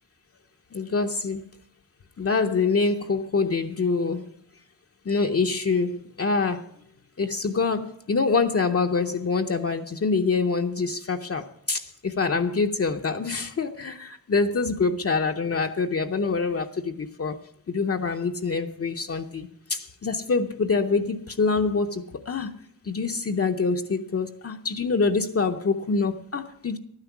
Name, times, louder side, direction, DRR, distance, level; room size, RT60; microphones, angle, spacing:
voice 1, 0.7-1.4 2.2-4.2 5.1-6.6 7.2-17.4 17.7-22.5 22.9-26.8, left 4 dB, 40° left, 4 dB, 0.7 m, -25 dB
11.5 x 9.7 x 7.1 m, 0.72 s
wide cardioid pair, 170°, 35 cm